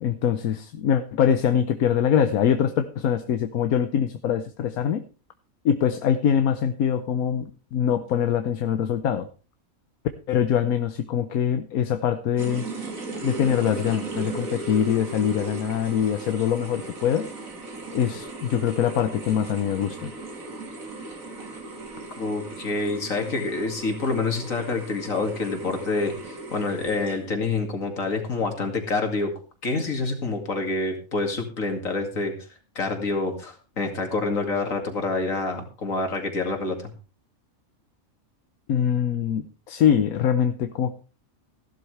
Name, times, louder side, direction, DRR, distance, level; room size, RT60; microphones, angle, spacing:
voice 1, 0.0-5.0 5.6-9.3 10.3-12.6 13.2-17.3 17.9-20.1 38.7-40.9, left 8 dB, 85° left, 9 dB, 1.3 m, -23 dB
sound 1, 12.4-27.5, right 2 dB, 70° right, 2.6 m, -37 dB
voice 2, 22.2-29.3 29.6-32.3 32.8-36.8, left 3 dB, 70° left, 4 dB, 2.8 m, -27 dB
15.0 x 12.0 x 3.3 m, 0.35 s
omnidirectional pair, 1.5 m